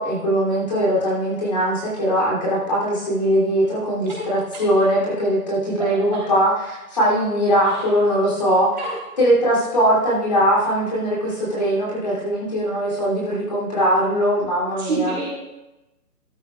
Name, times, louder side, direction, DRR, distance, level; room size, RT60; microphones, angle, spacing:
voice 1, 0.0-8.7 9.2-15.1, equal, 25° left, -6 dB, 2.9 m, -20 dB
voice 2, 14.8-15.3, right 4 dB, 30° right, -5 dB, 3.4 m, -27 dB
14.5 x 13.0 x 2.3 m, 0.97 s
hypercardioid pair, 180°, 45 cm